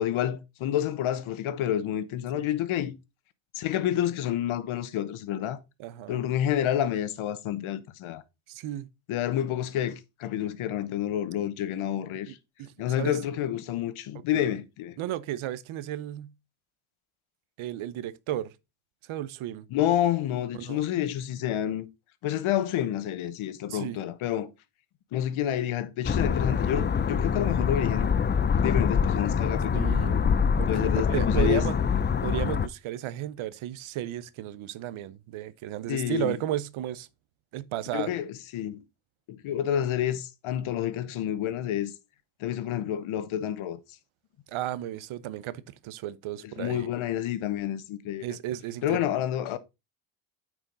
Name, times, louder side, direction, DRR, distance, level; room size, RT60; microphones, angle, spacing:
voice 1, 0.0-2.9 3.5-5.6 6.1-8.2 9.1-9.9 10.2-12.4 12.8-14.9 19.7-21.9 22.2-24.5 25.1-28.1 28.5-29.9 30.7-31.6 35.9-36.3 37.9-38.3 38.5-38.8 39.3-41.9 42.4-43.8 46.6-48.3 48.8-49.6, left 11 dB, 75° left, 1.1 m, -29 dB
voice 2, 5.8-6.3 8.5-8.9 12.3-12.4 12.6-13.2 14.3-14.5 15.0-16.3 17.6-18.5 19.0-19.7 20.5-20.8 23.7-24.0 29.7-30.2 30.6-31.7 32.2-37.1 37.5-38.1 44.5-46.9 48.2-49.1, right 13 dB, 75° right, 0.8 m, -34 dB
sound 1, 26.0-32.7, left 6 dB, 25° left, 0.5 m, -25 dB
8.9 x 4.8 x 3.9 m
cardioid pair, 95°, 49 cm